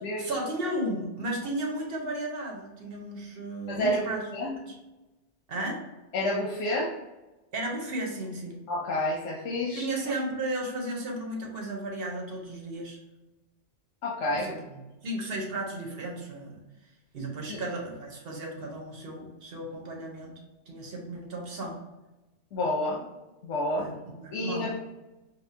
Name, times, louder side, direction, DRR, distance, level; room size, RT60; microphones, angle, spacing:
voice 1, 0.2-4.2 4.6-4.8 5.5-5.8 7.5-8.5 9.7-13.0 14.3-16.6 17.1-20.3 20.7-21.8 23.8-24.7, right 1 dB, 55° right, 0 dB, 1.1 m, -34 dB
voice 2, 3.7-4.5 6.1-6.9 8.7-9.9 14.0-14.5 17.5-17.6 22.5-23.1 23.4-23.9 24.3-24.8, left 1 dB, 85° left, -3 dB, 1.1 m, -29 dB
5.5 x 2.3 x 2.7 m, 1.1 s
omnidirectional pair, 1.2 m